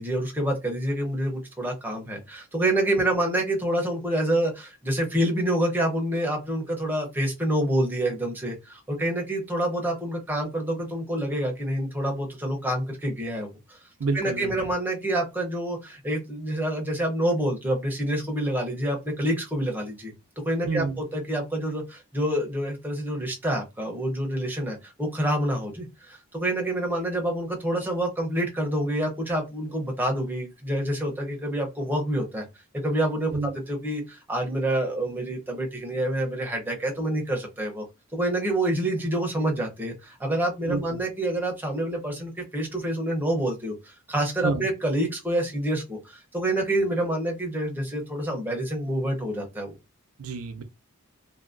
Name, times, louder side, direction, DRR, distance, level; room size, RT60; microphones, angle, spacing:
voice 1, 0.0-13.8 14.1-20.1 20.4-32.5 32.8-37.8 38.1-49.8, right 1 dB, 10° right, 0.8 m, -27 dB
voice 2, 14.0-14.6 20.7-21.0 33.3-33.5 40.7-41.0 44.4-44.7 50.2-50.6, right 4 dB, 85° right, 0.6 m, -29 dB
2.7 x 2.6 x 2.5 m
head